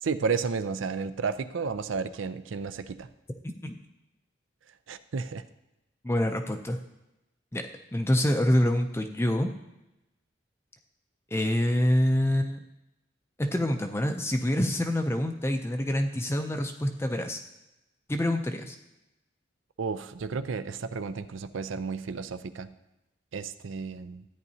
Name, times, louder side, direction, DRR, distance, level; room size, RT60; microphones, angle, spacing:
voice 1, 0.0-3.1 4.9-5.4 19.8-22.7 23.3-24.2, right 5 dB, 80° right, 12 dB, 0.5 m, -32 dB
voice 2, 3.4-3.8 6.0-6.8 7.5-7.6 7.9-9.5 11.3-12.6 13.4-17.4 18.1-18.8, left 1 dB, 15° left, 5 dB, 0.4 m, -26 dB
13.5 x 9.3 x 2.8 m, 0.94 s
head